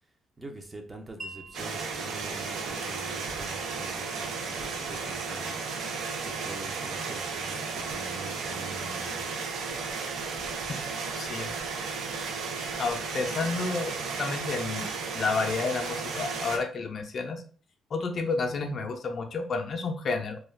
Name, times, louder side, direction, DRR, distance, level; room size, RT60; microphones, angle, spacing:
voice 1, 0.4-5.6 6.2-9.2 9.7-9.8, right 2 dB, 20° right, 4 dB, 0.5 m, -44 dB
Wind chime, 1.2-7.3, right 1 dB, 40° right, 1.2 m, -52 dB
sound 1, 1.5-16.6, right 4 dB, 80° right, 0.4 m, -34 dB
voice 2, 11.2-11.5 12.8-14.9 15.1-17.4 17.9-20.4, left 4 dB, 50° left, 4 dB, 0.4 m, -30 dB
2.2 x 2.2 x 3.2 m, 0.41 s
cardioid pair, 90°, 0 cm